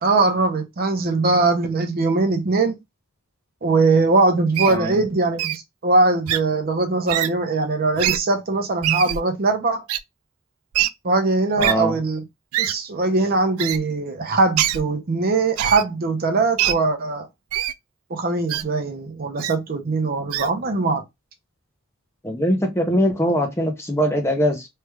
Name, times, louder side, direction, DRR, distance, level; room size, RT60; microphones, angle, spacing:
voice 1, 0.0-2.8 3.6-9.8 11.0-12.2 12.6-17.3 18.1-21.0, right 3 dB, 40° right, 0.6 m, -21 dB
Wild animals, 4.5-4.7 5.4-5.6 6.3-6.4 7.1-7.3 8.0-8.2 8.8-9.2 9.9-10.0 10.7-10.9 11.6-11.7 12.5-12.7 13.6-13.8 14.6-14.8 15.6-15.8 16.6-16.7 17.5-17.7 18.5-18.6 19.4-19.5 20.3-20.5, right 12 dB, 75° right, 0.3 m, -23 dB
voice 2, 4.7-5.0 11.6-12.0 22.2-24.7, equal, 10° left, 0.6 m, -22 dB
3.2 x 2.3 x 3.1 m
head